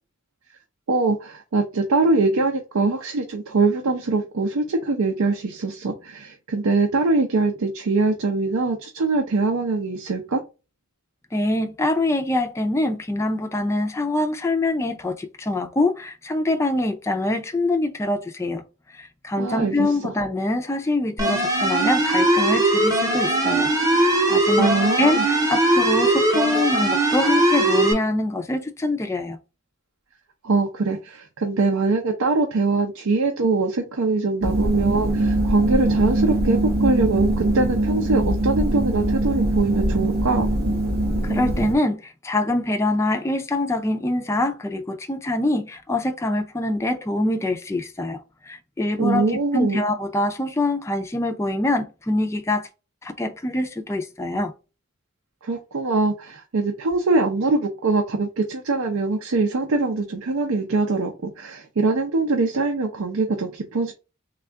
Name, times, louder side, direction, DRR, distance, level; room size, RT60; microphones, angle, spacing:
voice 1, 0.9-10.4 19.4-19.9 24.6-25.2 30.4-40.5 49.0-49.8 55.4-63.9, right 3 dB, 80° right, 0.6 m, -23 dB
voice 2, 11.3-18.6 18.9-23.7 24.0-29.4 41.2-48.2 48.5-52.7 53.0-54.5, left 2 dB, 15° left, 0.3 m, -24 dB
sound 1, 21.2-27.9, right 1 dB, 15° right, 0.8 m, -20 dB
sound 2, 34.4-41.8, right 1 dB, 45° right, 0.8 m, -22 dB
3.5 x 2.3 x 3.3 m
head